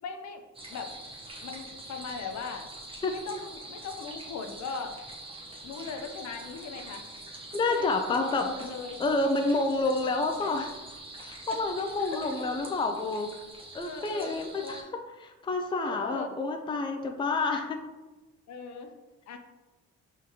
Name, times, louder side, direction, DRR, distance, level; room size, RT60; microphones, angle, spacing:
voice 1, 0.0-0.4 0.7-0.9 1.4-2.7 3.1-5.0 5.6-7.0 7.7-9.0 11.5-11.6 12.0-12.2 13.8-14.9 15.8-16.3 18.5-18.9 19.3-19.4, left 5 dB, 65° left, 5 dB, 0.7 m, -39 dB
sound 1, 0.5-14.8, right 2 dB, 20° right, 0.9 m, -44 dB
voice 2, 7.5-8.7 9.0-10.7 11.2-13.3 13.7-14.8 15.2-17.8, left 3 dB, 15° left, 5 dB, 0.4 m, -29 dB
5.0 x 3.7 x 2.8 m, 1.1 s
cardioid pair, 90°, 30 cm